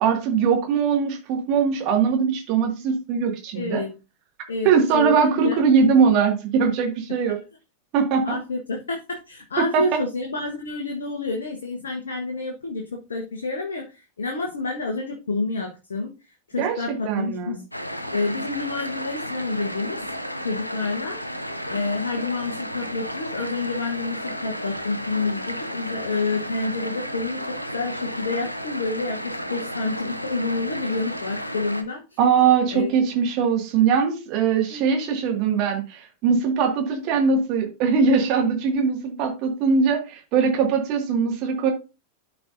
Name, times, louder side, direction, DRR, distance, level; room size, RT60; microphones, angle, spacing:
voice 1, 0.0-3.8 4.6-7.4 7.9-8.4 9.6-10.0 16.6-17.6 32.2-41.7, right 6 dB, 40° right, 2 dB, 1.9 m, -21 dB
voice 2, 3.5-3.9 4.5-5.6 7.3-7.4 8.2-16.1 16.5-17.7 18.1-20.0 20.4-21.2 21.7-32.2 32.7-33.0 34.7-35.1, left 3 dB, 70° left, 1 dB, 1.2 m, -29 dB
sound 1, 17.7-31.8, equal, 90° left, 0.7 m, -33 dB
12.5 x 4.6 x 2.6 m, 0.29 s
figure-of-eight pair, 90°, 0 cm